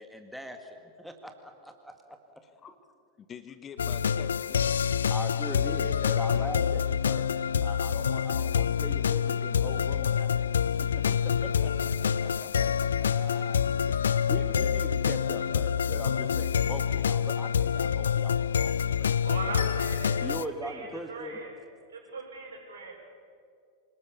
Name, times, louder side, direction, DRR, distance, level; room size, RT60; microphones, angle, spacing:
voice 1, 0.0-2.2 5.1-7.3 7.6-10.3 10.8-13.6 13.9-19.4 20.2-21.4, equal, ahead, 4 dB, 2.0 m, -41 dB
voice 2, 3.3-5.1 6.3-6.5, left 7 dB, 25° left, 12 dB, 1.2 m, -47 dB
sound 1, 3.8-20.4, left 7 dB, 70° left, 0.5 m, -27 dB
voice 3, 19.2-21.5 21.9-22.9, right 3 dB, 70° right, 1 dB, 5.9 m, -39 dB
27.0 x 19.5 x 7.0 m, 2.3 s
figure-of-eight pair, 90°, 0 cm